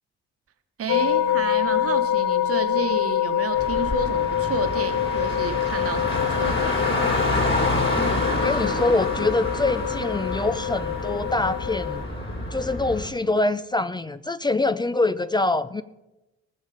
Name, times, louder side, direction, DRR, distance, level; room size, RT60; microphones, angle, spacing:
voice 1, 0.8-6.9, right 6 dB, 50° right, 6 dB, 1.3 m, -31 dB
sound 1, 0.9-12.0, left 11 dB, 75° left, 1.1 m, -26 dB
Car, 3.5-13.1, left 2 dB, 40° left, 3.1 m, -27 dB
voice 2, 8.3-12.0 12.5-15.8, left 2 dB, 15° left, 14 dB, 0.4 m, -24 dB
19.0 x 6.5 x 5.0 m, 0.98 s
cardioid pair, 90°, 30 cm